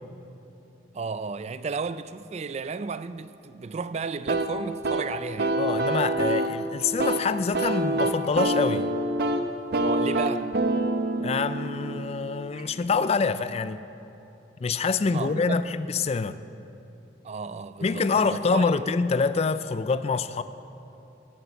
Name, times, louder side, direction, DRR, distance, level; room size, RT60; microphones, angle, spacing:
voice 1, 0.9-5.6 9.8-10.5 15.1-15.6 17.2-18.8, right 4 dB, 35° right, 0.4 m, -33 dB
sound 1, 4.3-12.9, right 1 dB, 60° right, 0.7 m, -27 dB
voice 2, 5.6-8.9 11.2-13.8 14.6-16.4 17.8-20.4, left 4 dB, 35° left, 0.4 m, -26 dB
13.0 x 9.3 x 6.9 m
head